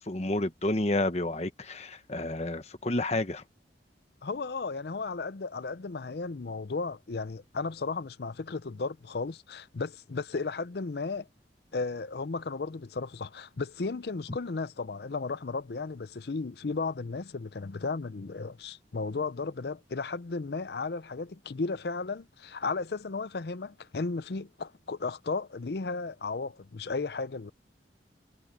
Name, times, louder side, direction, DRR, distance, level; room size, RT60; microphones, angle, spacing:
voice 1, 0.1-3.4, left 1 dB, 35° left, 1.2 m, -30 dB
voice 2, 4.2-11.3 11.7-27.5, left 4 dB, 60° left, 0.6 m, -34 dB
head